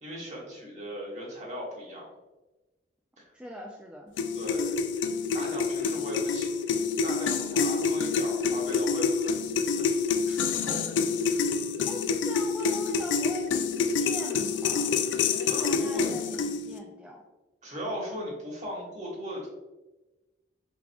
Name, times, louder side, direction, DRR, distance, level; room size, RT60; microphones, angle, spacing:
voice 1, 0.0-2.1 3.2-3.3 4.4-4.8 5.3-9.4 9.8-10.8 15.4-16.1 17.6-19.5, equal, 40° right, -3 dB, 1.3 m, -38 dB
voice 2, 3.3-4.1 11.9-13.5 14.0-17.2, equal, 5° right, -2 dB, 0.3 m, -42 dB
sound 1, 4.2-16.8, left 5 dB, 80° left, 0.3 m, -27 dB
4.8 x 3.6 x 2.3 m, 1.1 s
head